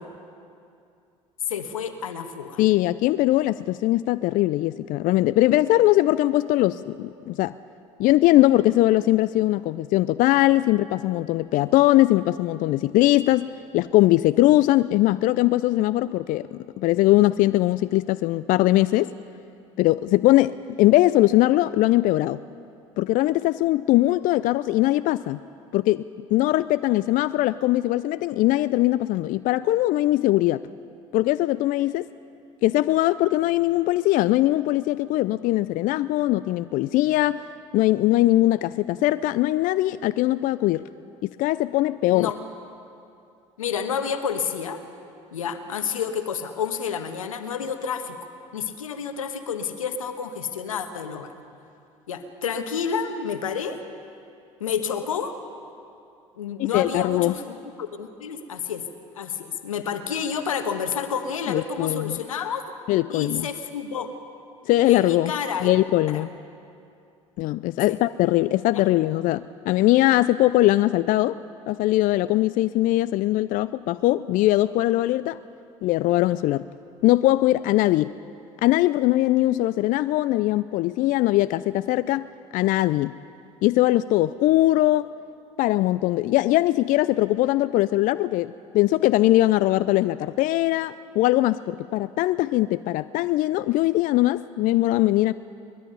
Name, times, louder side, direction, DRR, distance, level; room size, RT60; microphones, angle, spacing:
voice 1, 1.5-2.6 42.1-42.4 43.6-44.8 45.3-48.2 48.5-51.3 52.1-53.8 54.6-55.3 56.4-58.9 59.1-62.6 63.1-64.1 64.9-65.7 66.1-66.3 67.9-68.0 68.7-68.8, left 7 dB, 85° left, 8 dB, 1.3 m, -29 dB
voice 2, 2.6-7.5 8.0-13.5 13.7-19.1 19.8-22.4 23.0-25.4 25.7-26.0 26.3-30.6 31.1-32.1 32.6-37.4 37.7-40.9 41.2-42.3 56.6-57.3 61.5-62.2 62.9-63.5 64.7-65.3 65.6-66.3 67.4-71.4 71.7-75.4 75.8-76.6 77.0-78.1 78.6-82.3 82.5-83.1 83.6-85.1 85.6-95.3, left 16 dB, 55° left, 16 dB, 0.5 m, -21 dB
22.5 x 21.0 x 5.5 m, 2.5 s
hypercardioid pair, 65°, 17 cm